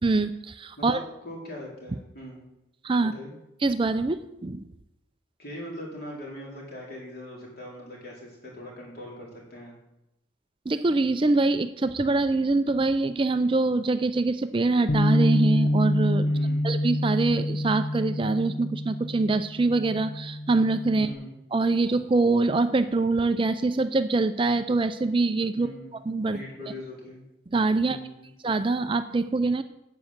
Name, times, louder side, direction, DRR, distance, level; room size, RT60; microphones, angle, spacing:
voice 1, 0.0-1.0 2.8-3.1 3.6-4.6 10.7-16.3 16.6-21.1 21.5-25.7 26.1-26.4 27.5-28.0 28.4-29.6, right 3 dB, 25° right, 10 dB, 0.4 m, -24 dB
voice 2, 1.2-2.4 3.0-3.3 5.4-9.7 16.2-16.7 20.9-21.3 25.5-25.9 26.3-27.2 27.8-28.3, equal, 50° left, -2 dB, 4.1 m, -41 dB
Bass guitar, 14.9-21.1, left 1 dB, 65° left, 0.9 m, -27 dB
9.6 x 8.6 x 7.2 m, 0.89 s
head